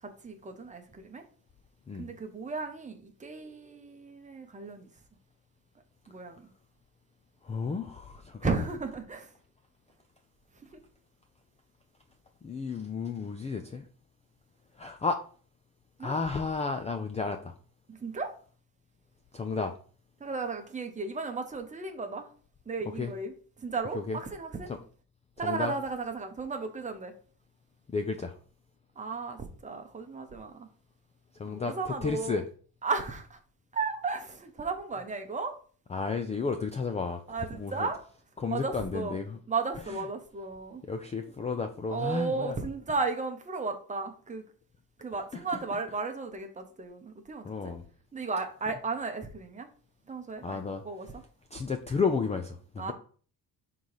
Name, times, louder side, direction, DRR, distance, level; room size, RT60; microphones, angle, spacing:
voice 1, 0.0-1.2 2.0-4.9 6.1-6.5 8.4-9.3 10.5-10.8 16.0-16.1 17.9-18.3 20.2-22.3 22.7-24.7 25.4-27.1 29.0-30.7 31.4-32.4 32.8-33.4 33.7-35.6 37.3-38.0 38.5-39.1 39.5-40.8 41.9-44.4 45.0-47.7 48.1-49.7 50.1-51.1 52.8-52.9, right 4 dB, 20° right, 0.8 m, -34 dB
voice 2, 7.4-8.5 12.4-13.9 14.7-15.2 16.0-17.5 19.3-19.7 23.0-23.1 23.9-24.2 24.7-24.8 25.4-25.7 27.9-28.4 31.3-32.4 35.9-37.9 38.4-39.4 39.9-40.0 40.9-42.6 45.3-45.8 47.4-47.8 50.4-50.8 51.5-52.9, left 4 dB, 20° left, 0.3 m, -32 dB
5.5 x 3.9 x 4.8 m
cardioid pair, 165°, 37 cm